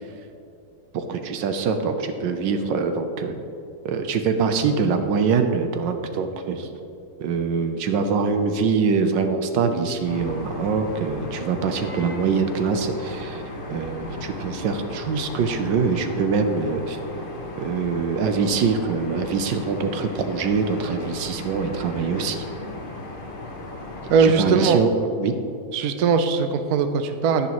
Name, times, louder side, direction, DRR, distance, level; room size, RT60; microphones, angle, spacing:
voice 1, 0.9-3.4 3.8-6.7 7.2-13.4 13.7-17.0 17.6-22.4 24.2-24.9 25.2-25.3, right 5 dB, 85° right, 7 dB, 1.4 m, -24 dB
sound 1, 10.0-24.4, left 2 dB, 35° left, 0.9 m, -36 dB
voice 2, 24.1-24.8 25.7-27.5, right 5 dB, 70° right, 8 dB, 1.0 m, -20 dB
10.5 x 10.0 x 3.0 m, 2.7 s
omnidirectional pair, 2.0 m